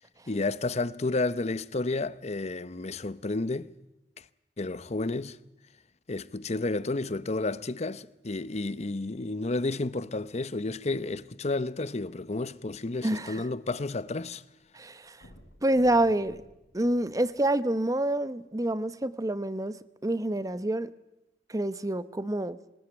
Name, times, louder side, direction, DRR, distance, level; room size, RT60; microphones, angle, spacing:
voice 1, 0.3-3.7 4.2-4.3 4.6-5.4 6.1-14.4, left 2 dB, 40° left, 0.8 m, -31 dB
sound 1, 12.9-14.4 14.6-14.7 15.1-17.7 18.4-18.5, equal, 80° left, 4.9 m, -55 dB
voice 2, 13.0-13.4 14.7-15.2 15.6-16.4 16.7-20.9 21.5-22.6, right 1 dB, 20° right, 0.9 m, -27 dB
22.5 x 20.0 x 8.9 m
head